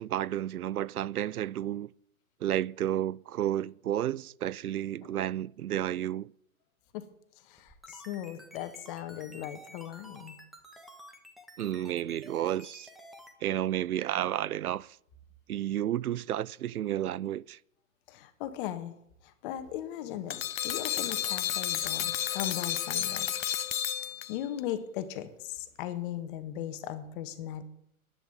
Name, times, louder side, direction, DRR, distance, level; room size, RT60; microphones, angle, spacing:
voice 1, 0.0-1.9 2.4-6.3 11.6-12.9 13.4-15.0 15.5-17.6, right 12 dB, 90° right, 0.5 m, -31 dB
voice 2, 7.5-10.4 18.1-18.9 19.4-23.3 24.3-27.6, left 11 dB, 35° left, 1.7 m, -38 dB
sound 1, 7.6-13.3, equal, ahead, 1.5 m, -51 dB
sound 2, 20.3-24.6, left 11 dB, 65° left, 0.9 m, -32 dB
10.5 x 10.5 x 9.2 m
hypercardioid pair, 135°, 43 cm